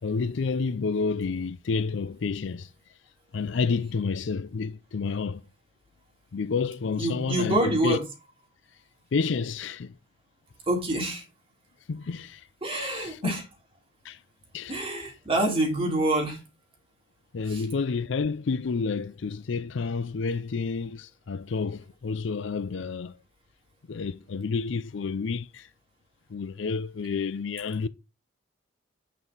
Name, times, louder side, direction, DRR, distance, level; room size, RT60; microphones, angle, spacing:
voice 1, 0.0-2.7 3.3-5.4 6.3-8.0 9.1-10.0 11.9-12.5 12.7-13.4 14.0-14.2 14.5-14.9 17.3-23.2 23.9-25.7 26.3-27.9, left 4 dB, 65° left, 0.5 m, -30 dB
voice 2, 7.0-8.0 10.7-11.2 12.6-13.4 14.7-16.4 17.5-17.6, right 1 dB, 30° right, 3.2 m, -26 dB
9.1 x 5.9 x 4.0 m
head